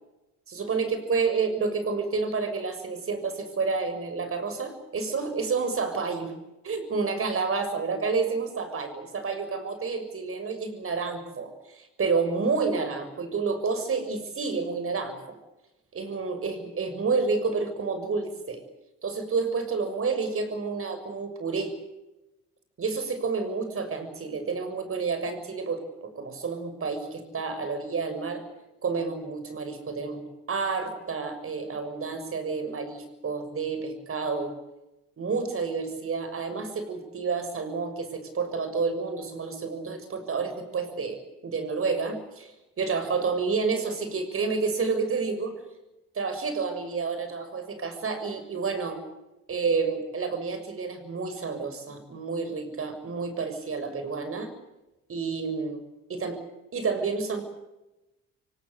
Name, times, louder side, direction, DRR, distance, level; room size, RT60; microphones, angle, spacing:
voice 1, 0.5-6.3 6.6-15.4 15.9-18.6 19.0-21.7 22.8-28.4 28.8-30.2 30.5-34.5 35.2-42.5 42.8-45.5 46.1-49.0 49.5-54.5 55.1-55.8 56.1-56.4 56.7-57.4, right 4 dB, 45° right, 9 dB, 6.8 m, -29 dB
25.0 x 18.5 x 8.2 m, 0.99 s
cardioid pair, 90°, 30 cm